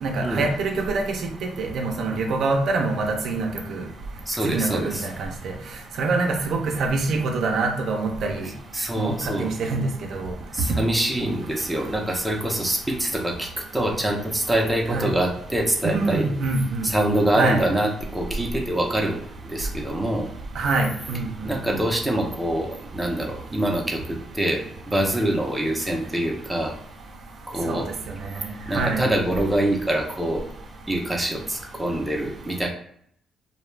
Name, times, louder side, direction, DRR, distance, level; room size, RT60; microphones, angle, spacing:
voice 1, 0.0-1.0 1.6-3.8 4.4-5.3 6.0-8.5 9.0-9.1 9.4-9.9 10.1-10.3 14.9-15.1 15.8-16.9 17.3-17.6 20.6-21.3 27.7-27.8 28.7-29.0, right 3 dB, 70° right, 2 dB, 0.5 m, -25 dB
voice 2, 4.3-5.0 8.7-9.5 10.5-16.3 16.8-20.3 21.4-26.7 27.5-27.9 28.7-30.4 30.9-32.7, right 1 dB, 5° right, 0 dB, 0.6 m, -25 dB
2.3 x 2.1 x 3.1 m, 0.67 s
cardioid pair, 90°, 0 cm